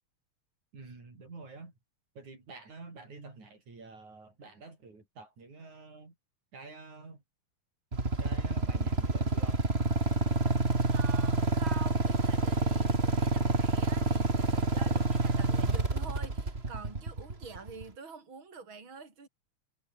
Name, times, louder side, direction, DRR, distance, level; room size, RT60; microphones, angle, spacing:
voice 1, 0.7-1.7 2.2-6.1 6.5-7.2 8.2-9.6, right 3 dB, 80° right, 8.4 m, -48 dB
Motorcycle / Idling, 7.9-17.8, right 3 dB, 20° right, 2.9 m, -28 dB
voice 2, 10.9-19.3, right 5 dB, 40° right, 5.5 m, -46 dB
omnidirectional pair, 3.3 m